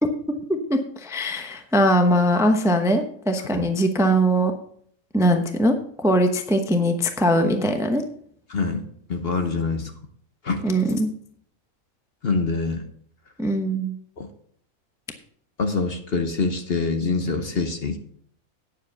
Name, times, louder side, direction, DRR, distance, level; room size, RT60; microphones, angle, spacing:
voice 1, 0.0-4.5 5.1-8.0 10.6-11.1 13.4-13.9, equal, 5° right, 6 dB, 0.7 m, -21 dB
voice 2, 8.5-8.8 9.1-9.9 10.4-10.7 12.2-12.8 14.2-14.3 15.6-18.0, left 4 dB, 45° left, 7 dB, 1.1 m, -25 dB
9.5 x 7.4 x 5.7 m, 0.62 s
omnidirectional pair, 1.5 m